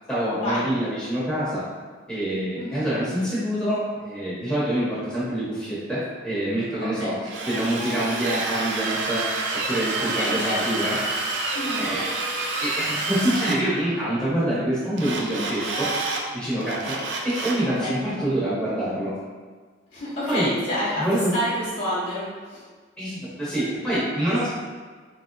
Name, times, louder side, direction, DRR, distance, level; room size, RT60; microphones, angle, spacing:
voice 1, 0.1-1.6 2.1-7.1 7.5-9.2 9.7-11.0 11.3-12.1 12.6-15.9 16.3-19.1 20.3-20.5 21.0-21.3 23.0-24.5, right 1 dB, 5° left, -11 dB, 0.8 m, -26 dB
voice 2, 2.5-2.9 6.8-7.1 10.0-10.8 11.5-11.9 17.8-17.9 19.9-21.1 21.3-22.6, equal, 75° left, -12 dB, 1.0 m, -29 dB
Drill, 7.3-13.6 15.0-16.2 16.6-17.6, right 3 dB, 65° right, 0.4 m, -28 dB
3.0 x 2.9 x 2.6 m, 1.5 s
head